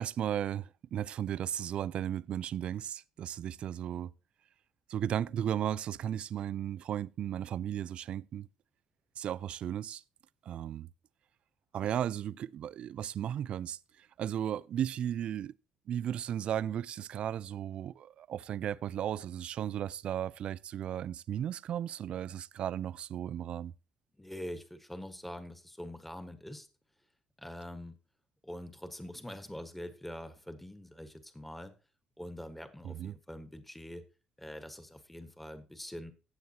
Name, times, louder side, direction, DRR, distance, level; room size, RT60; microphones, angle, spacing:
voice 1, 0.0-4.1 4.9-8.5 9.2-10.0 10.5-10.9 11.7-15.5 15.9-23.7 32.8-33.2, right 10 dB, 60° right, 0.4 m, -35 dB
voice 2, 24.2-26.7 27.4-28.0 28.4-31.7 32.2-34.0 34.4-36.1, left 1 dB, 5° left, 1.5 m, -44 dB
16.0 x 7.1 x 2.9 m
supercardioid pair, 70°, 2 cm